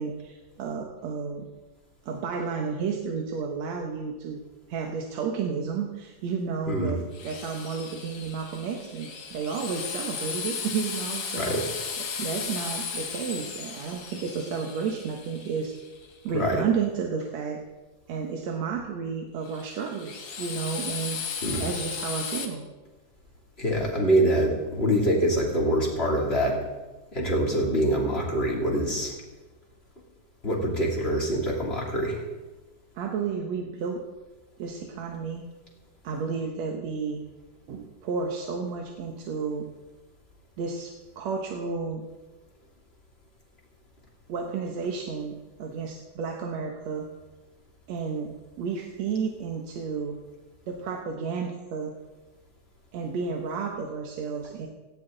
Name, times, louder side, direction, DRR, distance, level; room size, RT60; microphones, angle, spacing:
voice 1, 0.0-1.5 2.1-4.4 4.7-15.7 16.2-17.6 18.1-22.6 33.0-34.0 34.6-35.4 36.0-37.2 37.7-39.7 40.6-42.0 44.3-47.1 47.9-48.3 48.6-50.2 50.7-51.9 52.9-54.7, right 5 dB, 60° right, 1 dB, 2.2 m, -32 dB
Drill, 7.1-16.1 19.5-22.4, left 6 dB, 50° left, 1.6 m, -35 dB
voice 2, 23.6-26.6 27.1-29.1 30.4-32.2, right 1 dB, 20° left, -3 dB, 3.1 m, -25 dB
18.0 x 16.0 x 4.0 m, 1.2 s
omnidirectional pair, 3.9 m